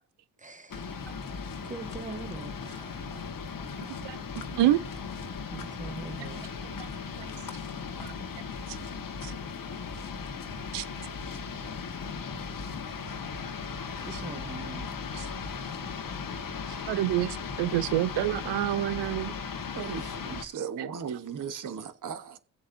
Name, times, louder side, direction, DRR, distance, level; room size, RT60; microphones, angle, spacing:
voice 1, 0.4-1.1 1.6-3.2 5.5-6.4 14.0-14.9, right 3 dB, 20° right, 1.2 m, -42 dB
sound 1, 0.7-20.5, left 5 dB, 50° left, 1.7 m, -37 dB
voice 2, 16.9-19.3, right 14 dB, 80° right, 0.7 m, -27 dB
voice 3, 19.7-22.4, right 7 dB, 50° right, 1.2 m, -37 dB
21.0 x 7.8 x 2.7 m
supercardioid pair, 65°, 41 cm